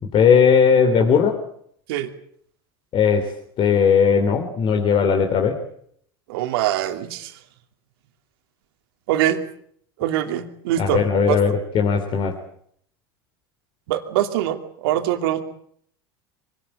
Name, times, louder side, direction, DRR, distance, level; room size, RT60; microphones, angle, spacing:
voice 1, 0.0-1.4 2.9-3.3 3.6-5.6 10.8-12.3, left 6 dB, 45° left, 3 dB, 3.3 m, -18 dB
voice 2, 6.3-7.3 9.1-9.4 10.0-11.4 13.9-15.4, right 12 dB, 70° right, 6 dB, 2.8 m, -23 dB
24.5 x 18.5 x 8.9 m, 0.67 s
hypercardioid pair, 90°, 13 cm